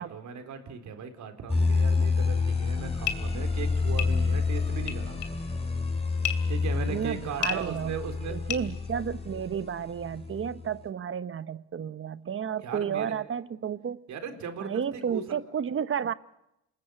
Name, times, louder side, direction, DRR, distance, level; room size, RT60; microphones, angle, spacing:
voice 1, 0.0-5.4 6.5-8.4 12.6-13.1 14.1-15.2, right 6 dB, 70° right, 4.2 m, -38 dB
sound 1, 1.5-10.6, left 4 dB, 20° left, 5.2 m, -29 dB
sound 2, 2.7-9.4, left 11 dB, 80° left, 2.8 m, -36 dB
voice 2, 6.9-7.9 8.3-14.0 14.6-16.1, right 8 dB, 45° right, 1.0 m, -32 dB
28.5 x 20.0 x 8.3 m
cardioid pair, 90°, 30 cm